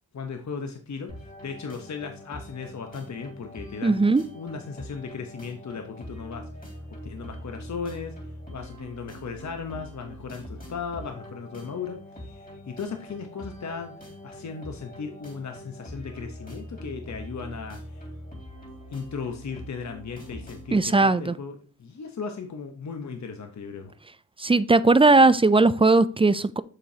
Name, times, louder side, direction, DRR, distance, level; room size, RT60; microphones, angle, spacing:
voice 1, 0.1-1.1 1.4-4.0 4.3-6.4 7.0-8.1 8.5-12.0 12.2-13.9 14.2-18.0 18.9-23.9, left 5 dB, 50° left, 0.9 m, -36 dB
sound 1, 1.1-20.8, equal, 25° left, 3.5 m, -43 dB
voice 2, 3.8-4.2 20.7-21.3 24.4-26.6, right 3 dB, 15° right, 0.3 m, -18 dB
7.1 x 7.0 x 2.8 m
cardioid pair, 65°, 36 cm